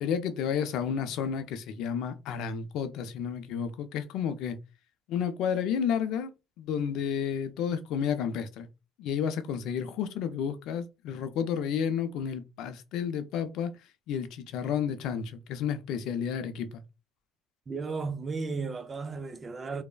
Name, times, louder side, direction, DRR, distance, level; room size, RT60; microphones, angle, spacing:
voice 1, 0.0-4.6 5.1-6.3 6.6-8.7 9.0-13.7 14.1-16.8, left 7 dB, 70° left, 0.4 m, -31 dB
voice 2, 17.7-19.8, right 4 dB, 30° right, 0.4 m, -34 dB
3.2 x 2.0 x 2.3 m
supercardioid pair, 95°, 0 cm